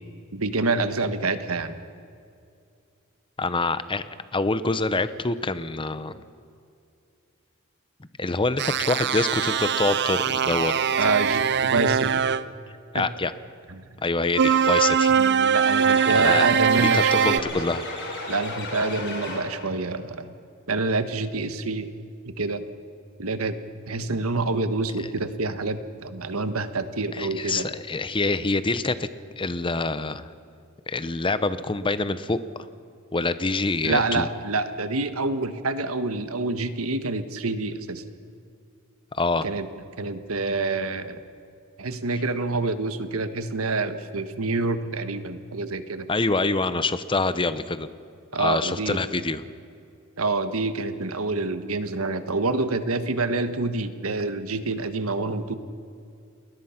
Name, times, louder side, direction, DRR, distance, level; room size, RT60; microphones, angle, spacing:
voice 1, 0.3-1.8 11.0-12.2 12.9-13.1 13.7-13.8 15.2-17.5 18.3-20.3 20.7-21.9 22.3-22.6 23.2-23.5 23.9-27.7 33.8-38.0 39.4-39.7 40.0-41.2 41.8-46.1 48.3-49.0 50.2-55.5, right 3 dB, 85° right, 10 dB, 1.5 m, -27 dB
voice 2, 3.4-6.1 8.2-10.7 12.9-13.3 14.0-15.2 16.2-16.5 16.9-17.8 27.1-29.1 29.4-30.3 30.9-32.4 33.1-34.3 39.1-39.5 46.1-47.9 48.4-49.4, left 3 dB, 25° left, 14 dB, 0.8 m, -26 dB
sound 1, 8.6-12.4 14.3-17.4, right 7 dB, 55° right, 0.6 m, -22 dB
sound 2, 15.6-19.8, left 2 dB, 55° left, 5.1 m, -34 dB
30.0 x 20.5 x 5.9 m, 2.5 s
head